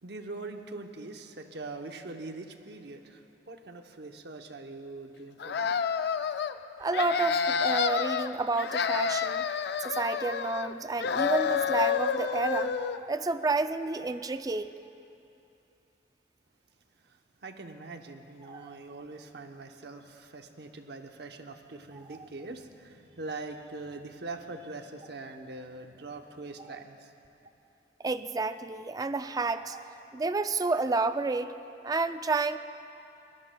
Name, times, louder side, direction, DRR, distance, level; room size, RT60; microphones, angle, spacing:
voice 1, 0.0-5.7 17.0-27.1, right 3 dB, 70° right, 5 dB, 0.8 m, -43 dB
sound 1, 5.4-6.5 6.9-8.3 8.6-10.7 11.0-13.0, left 6 dB, 65° left, 0.4 m, -29 dB
voice 2, 6.8-9.4 9.8-14.7 18.5-18.8 22.1-22.2 28.0-31.5 31.8-32.6, right 3 dB, 20° right, 11 dB, 0.4 m, -30 dB
22.5 x 18.5 x 2.2 m, 2.8 s
head